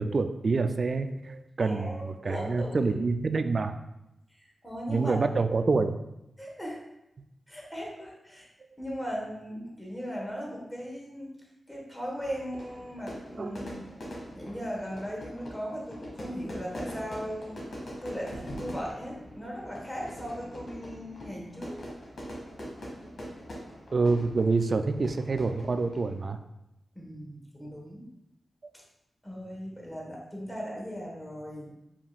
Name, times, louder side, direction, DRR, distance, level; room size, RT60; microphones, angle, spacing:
voice 1, 0.0-3.7 4.9-6.0 13.4-13.6 23.9-26.4 28.6-28.7, right 3 dB, 55° right, 8 dB, 0.3 m, -27 dB
voice 2, 1.6-3.0 4.3-5.2 6.4-6.8 7.5-8.5 8.8-11.3 11.7-13.8 14.3-17.6 18.0-21.8 26.9-28.1 29.2-31.7, equal, 10° left, -3 dB, 1.4 m, -38 dB
Fire / Fireworks, 12.2-26.2, equal, 60° left, 1.5 m, -43 dB
7.1 x 2.9 x 2.4 m, 0.87 s
cardioid pair, 55°, 0 cm